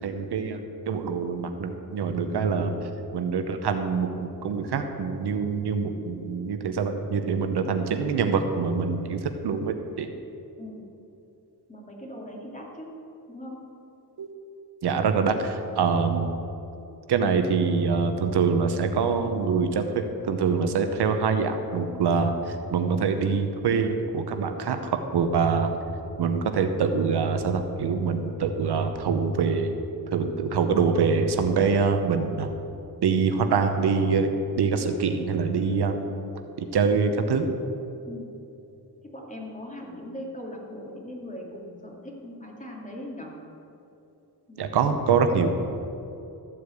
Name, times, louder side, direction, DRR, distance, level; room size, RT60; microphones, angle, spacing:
voice 1, 0.0-2.8 3.1-4.1 4.4-10.1 14.2-14.3 14.8-16.4 17.1-22.3 22.7-25.7 26.2-29.7 30.1-32.5 33.0-34.3 34.6-36.0 36.6-37.5 44.6-45.5, right 5 dB, 90° right, 7 dB, 0.9 m, -25 dB
voice 2, 11.7-12.9 13.3-13.6 38.0-38.3 39.0-43.3 44.5-44.7, left 1 dB, 20° left, -2 dB, 2.7 m, -40 dB
14.0 x 4.8 x 8.3 m, 2.8 s
cardioid pair, 65°, 38 cm